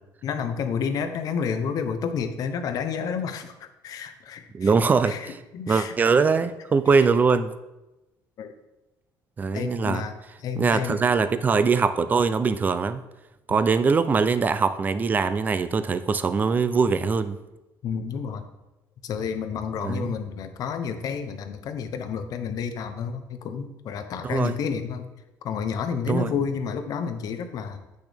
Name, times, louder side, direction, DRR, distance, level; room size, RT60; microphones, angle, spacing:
voice 1, 0.2-4.7 5.0-5.9 7.0-7.1 8.4-8.5 9.5-11.0 13.5-13.6 17.8-18.5 19.0-25.1 25.4-27.8, left 6 dB, 55° left, 8 dB, 0.8 m, -30 dB
voice 2, 4.5-5.4 5.7-7.5 9.4-10.0 10.6-13.0 13.5-17.4 19.8-20.1 24.2-24.6 26.1-26.3, right 5 dB, 25° right, 13 dB, 0.4 m, -22 dB
8.1 x 6.3 x 3.5 m, 1.0 s
cardioid pair, 140°, 7 cm